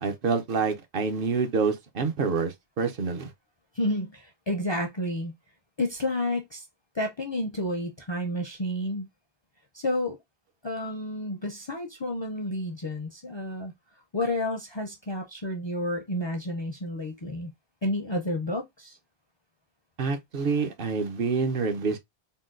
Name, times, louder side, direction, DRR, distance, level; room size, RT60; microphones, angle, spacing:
voice 1, 0.0-3.3 20.0-22.0, right 5 dB, 60° right, 0.8 m, -27 dB
voice 2, 3.7-5.3 5.8-6.6 6.9-9.1 9.7-10.2 10.6-13.7 14.1-17.5 17.8-19.0, left 1 dB, 40° left, 0.4 m, -30 dB
3.7 x 2.2 x 2.4 m
omnidirectional pair, 1.1 m